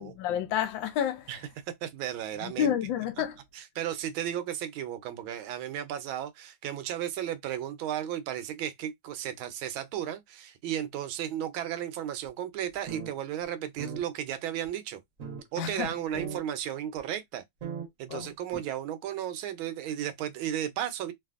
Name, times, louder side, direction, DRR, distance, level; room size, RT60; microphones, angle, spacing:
voice 1, 0.0-1.3 2.4-3.4 15.6-15.9 18.1-18.3, left 9 dB, 75° left, 1.2 m, -30 dB
voice 2, 1.8-2.7 3.5-15.0 15.5-17.4 18.0-21.1, right 10 dB, 80° right, 1.4 m, -34 dB
sound 1, 12.7-13.1 13.4-13.5 13.8-14.0 14.6-14.7 15.2-15.4 15.8-15.9 16.1-16.4 17.0-17.1 17.6-17.9 18.5-18.6, right 7 dB, 55° right, 0.9 m, -37 dB
3.3 x 2.4 x 2.4 m
omnidirectional pair, 2.3 m